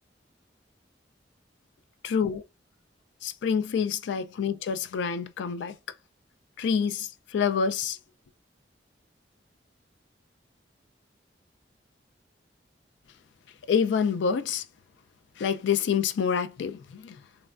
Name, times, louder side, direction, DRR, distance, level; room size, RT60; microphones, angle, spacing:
voice 1, 2.0-2.4 3.2-5.8 6.6-8.0 13.7-14.6 15.4-17.2, left 6 dB, 75° left, 0.3 m, -27 dB
3.3 x 2.1 x 2.4 m
head